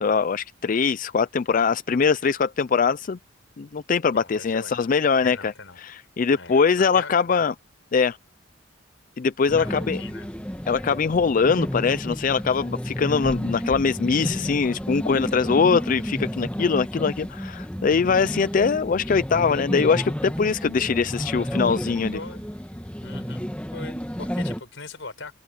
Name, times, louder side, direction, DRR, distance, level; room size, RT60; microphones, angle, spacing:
voice 1, 0.0-3.2 3.6-5.5 5.8-7.5 7.9-8.2 9.2-10.0 10.7-22.2, left 5 dB, 45° left, 0.4 m, -22 dB
voice 2, 4.1-4.8 5.2-5.8 6.4-7.4 9.6-9.7 10.0-10.3 22.1-22.5 23.0-25.3, left 3 dB, 80° left, 4.4 m, -40 dB
sound 1, 9.5-24.6, equal, 5° left, 1.6 m, -31 dB
open air
head